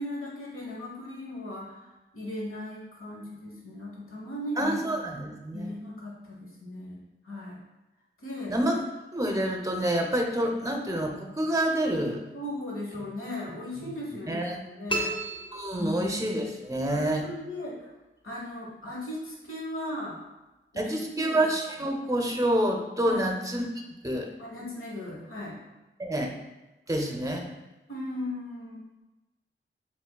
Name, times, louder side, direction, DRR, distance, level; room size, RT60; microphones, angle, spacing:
voice 1, 0.0-4.8 5.5-7.6 8.2-8.6 12.3-15.2 15.8-16.1 16.9-17.9 18.2-20.2 20.7-21.4 23.0-23.3 24.4-25.6 27.9-29.0, left 1 dB, 90° left, -5 dB, 1.1 m, -37 dB
voice 2, 4.6-5.7 8.5-8.8 9.1-12.2 14.3-14.6 15.5-17.3 20.8-23.6 24.0-24.3 26.0-26.3 26.9-27.5, right 1 dB, 15° right, 2 dB, 0.6 m, -27 dB
sound 1, 14.9-16.4, right 1 dB, 25° left, 0.7 m, -33 dB
4.9 x 3.6 x 2.2 m, 1.0 s
wide cardioid pair, 80°, 21 cm